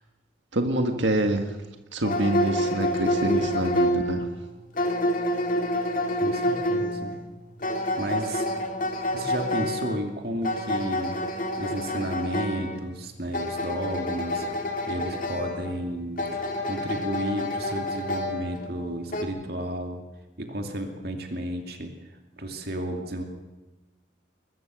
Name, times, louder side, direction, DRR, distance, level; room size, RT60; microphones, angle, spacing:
voice 1, 0.5-1.6 1.9-4.3, right 1 dB, 75° right, 5 dB, 1.7 m, -26 dB
sound 1, 2.0-19.2, left 1 dB, 45° left, 2.6 m, -28 dB
voice 2, 6.2-7.2 8.0-8.5 9.1-14.5 14.9-20.0 20.4-23.2, right 1 dB, 55° right, 3 dB, 2.6 m, -32 dB
22.0 x 20.5 x 6.4 m, 1.1 s
head